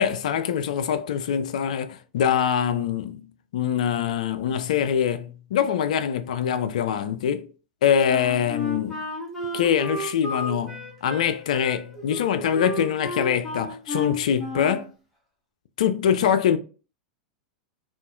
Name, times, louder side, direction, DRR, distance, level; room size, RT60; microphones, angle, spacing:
voice 1, 0.0-7.5 7.8-9.1 9.5-14.9 15.8-16.6, left 8 dB, 65° left, 0.3 m, -24 dB
Wind instrument woodwind instrument, 8.1-14.9, left 1 dB, ahead, 0.9 m, -33 dB
2.6 x 2.4 x 2.3 m
figure-of-eight pair, 95°, 4 cm